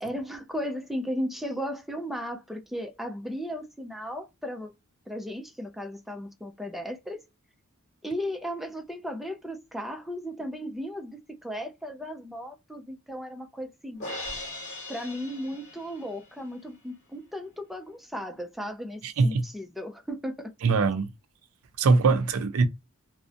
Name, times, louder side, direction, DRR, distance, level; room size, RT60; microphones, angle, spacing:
voice 1, 0.0-4.7 5.1-7.2 8.0-14.1 14.9-20.5, equal, ahead, 0.4 m, -35 dB
Crash cymbal, 14.0-16.3, left 2 dB, 35° left, 1.2 m, -39 dB
voice 2, 19.0-19.4 20.6-21.1 21.8-22.7, right 4 dB, 75° right, 0.4 m, -22 dB
2.5 x 2.1 x 2.5 m
head